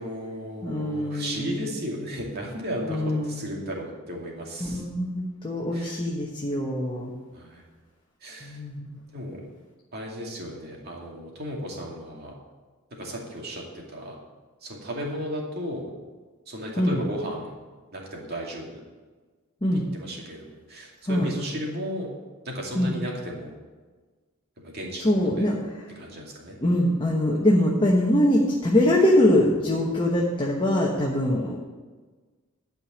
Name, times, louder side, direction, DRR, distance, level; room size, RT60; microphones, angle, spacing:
voice 1, 0.0-4.8 5.7-6.0 7.3-7.6 8.2-8.6 9.1-9.4 9.9-12.3 13.0-14.1 14.6-15.9 16.5-17.5 17.9-18.8 19.7-22.1 22.4-23.5 24.6-25.5 26.0-26.6, equal, 45° right, -1 dB, 2.5 m, -35 dB
voice 2, 0.6-1.7 2.9-3.5 4.6-7.1 8.4-9.0 16.8-17.0 19.6-19.9 21.1-21.3 22.7-22.9 25.0-25.6 26.6-31.6, left 1 dB, 20° left, -3 dB, 1.2 m, -23 dB
12.5 x 5.2 x 8.4 m, 1.4 s
head